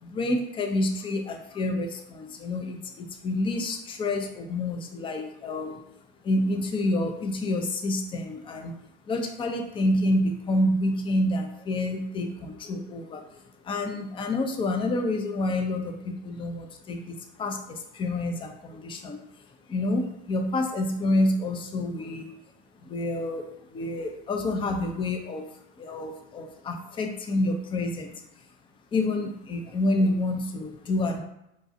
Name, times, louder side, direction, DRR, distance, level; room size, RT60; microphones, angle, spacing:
voice 1, 0.0-5.8 6.2-8.8 9.1-19.2 19.7-22.3 22.8-25.5 25.8-28.2 28.9-31.2, left 1 dB, 15° left, 5 dB, 0.4 m, -28 dB
4.9 x 2.3 x 2.6 m, 0.83 s
hypercardioid pair, 95°, 35 cm